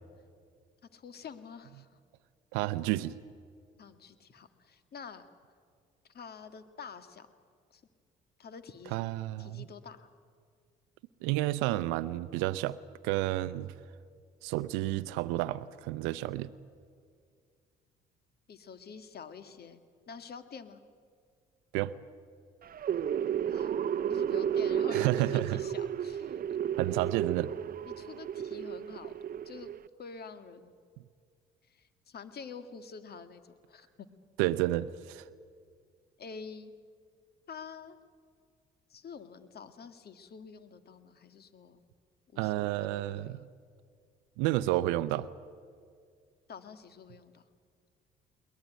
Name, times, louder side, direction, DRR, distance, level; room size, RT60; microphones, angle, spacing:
voice 1, 0.9-2.0 3.8-5.3 6.1-7.3 7.7-7.8 8.4-8.9 9.4-10.1 18.5-20.8 23.5-23.8 24.1-26.4 26.9-27.0 27.8-29.1 29.5-29.7 30.0-30.7 31.6-34.1 36.2-36.7 37.5-38.0 38.9-41.8 42.3-43.4 46.5-47.4, left 5 dB, 55° left, 2.0 m, -47 dB
voice 2, 2.5-3.1 8.9-9.6 11.2-12.8 13.0-13.7 14.4-16.5 21.7-21.9 24.9-25.6 26.8-27.5 34.4-35.2 42.4-43.4 44.4-45.3, right 16 dB, 85° right, 0.6 m, -30 dB
sound 1, 22.6-29.9, right 9 dB, 50° right, 0.6 m, -33 dB
22.0 x 19.5 x 9.3 m
supercardioid pair, 65°, 20 cm